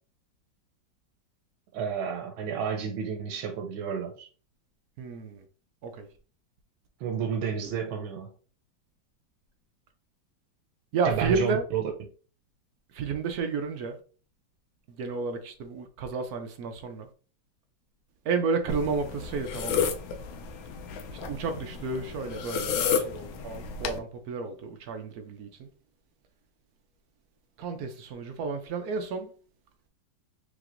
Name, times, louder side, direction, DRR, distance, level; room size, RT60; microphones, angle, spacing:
voice 1, 1.7-4.3 7.0-8.3 11.0-11.8, right 7 dB, 85° right, 1.5 m, -31 dB
voice 2, 5.0-5.5 5.8-6.1 10.9-11.6 12.9-14.0 14.9-17.1 18.2-19.9 21.2-25.7 27.6-29.3, right 4 dB, 70° right, 0.9 m, -31 dB
sound 1, 18.7-24.0, left 6 dB, 85° left, 1.4 m, -32 dB
4.9 x 3.6 x 2.5 m
omnidirectional pair, 2.1 m